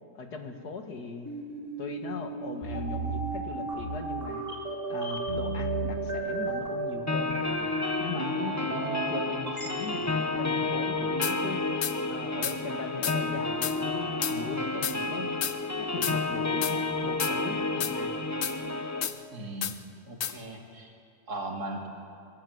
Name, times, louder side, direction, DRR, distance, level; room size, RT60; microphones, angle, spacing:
voice 1, 0.1-1.3 1.8-4.5 4.9-7.7 8.0-11.6 12.1-15.3 15.8-18.3, left 4 dB, 80° left, 5 dB, 2.5 m, -39 dB
sound 1, 1.3-9.7, right 3 dB, 35° right, 3.7 m, -33 dB
sound 2, 7.1-19.1, left 3 dB, 15° left, 0.9 m, -30 dB
sound 3, 11.2-11.4 11.8-12.0 12.4-12.6 13.0-13.2 13.6-13.8 14.2-14.4 14.8-15.0 15.4-15.6 16.0-16.2 16.6-16.8 17.2-17.3 17.8-17.9 18.4-18.6 19.0-19.2 19.6-19.8 20.2-20.3, left 9 dB, 60° left, 1.2 m, -31 dB
voice 2, 19.3-19.8 20.1-20.9 21.3-21.9, right 1 dB, 75° right, 1 dB, 3.2 m, -37 dB
24.5 x 21.0 x 8.0 m, 2.5 s
omnidirectional pair, 1.7 m